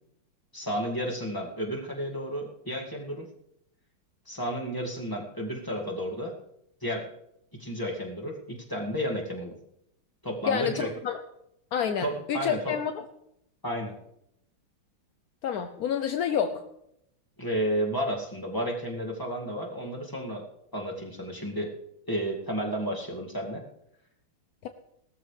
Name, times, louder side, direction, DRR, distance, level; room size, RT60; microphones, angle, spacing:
voice 1, 0.5-3.3 4.3-6.3 6.8-7.1 7.6-9.5 10.2-10.9 12.0-12.7 13.6-14.0 17.4-20.4 20.7-21.7 22.1-23.6, equal, 10° left, -1 dB, 1.9 m, -32 dB
voice 2, 10.5-11.2 11.7-13.0 15.4-16.6 24.6-24.7, left 8 dB, 70° left, 7 dB, 0.9 m, -29 dB
19.0 x 13.5 x 3.3 m, 0.78 s
omnidirectional pair, 2.3 m